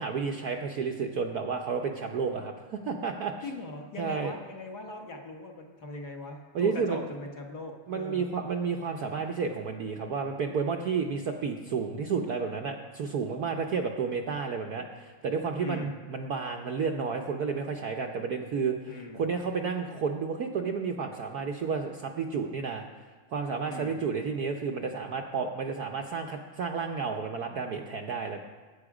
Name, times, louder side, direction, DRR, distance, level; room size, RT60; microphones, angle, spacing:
voice 1, 0.0-3.3 4.0-4.3 6.5-7.0 7.9-22.8 23.3-28.4, right 5 dB, 60° right, 3 dB, 1.0 m, -31 dB
voice 2, 3.4-8.2 15.6-16.0 18.9-19.2 23.7-24.0, left 3 dB, 50° left, 2 dB, 1.9 m, -40 dB
18.5 x 9.0 x 4.9 m, 1.4 s
omnidirectional pair, 2.4 m